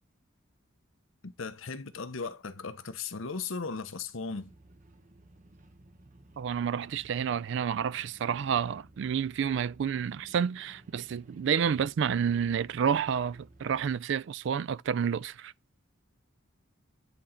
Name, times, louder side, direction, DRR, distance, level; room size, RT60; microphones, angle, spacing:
voice 1, 1.2-4.5, left 4 dB, 75° left, 0.8 m, -37 dB
sound 1, 4.4-14.0, right 1 dB, 40° right, 1.0 m, -57 dB
voice 2, 6.4-15.5, right 7 dB, 60° right, 0.3 m, -29 dB
9.8 x 3.9 x 4.3 m
head